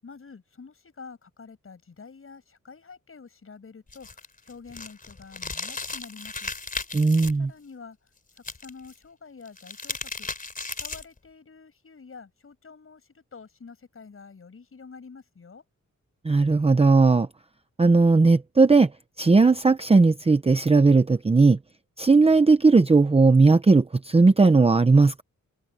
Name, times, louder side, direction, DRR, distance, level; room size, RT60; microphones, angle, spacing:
voice 1, 0.0-4.1 4.4-6.5 7.4-8.0 8.6-10.3 10.8-15.6, left 5 dB, 45° left, 7.8 m, -47 dB
sound 1, 3.9-7.3 8.4-8.9 9.4-11.2, left 3 dB, 25° left, 3.7 m, -35 dB
voice 2, 6.9-7.5 16.2-17.3 17.8-18.9 19.2-21.6 22.0-25.2, right 3 dB, 20° right, 0.7 m, -17 dB
open air
wide cardioid pair, 165°, 30 cm